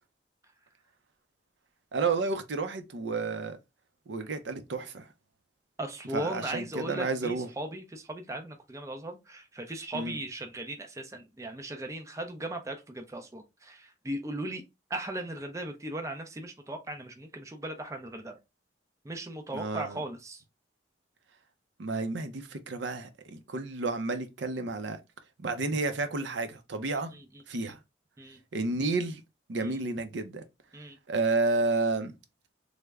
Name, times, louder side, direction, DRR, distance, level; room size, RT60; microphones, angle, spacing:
voice 1, 1.9-3.6 4.1-5.1 6.1-7.5 9.9-10.2 19.5-20.0 21.8-25.0 25.4-27.1 27.5-27.8 28.5-29.2 29.5-30.4 31.1-32.1, right 3 dB, 80° right, 0.6 m, -31 dB
voice 2, 5.8-14.6 14.9-18.4 19.0-20.4 27.1-27.7 28.2-28.4 29.6-29.8 30.7-31.0, right 1 dB, 15° right, 0.4 m, -38 dB
3.3 x 2.1 x 3.4 m
head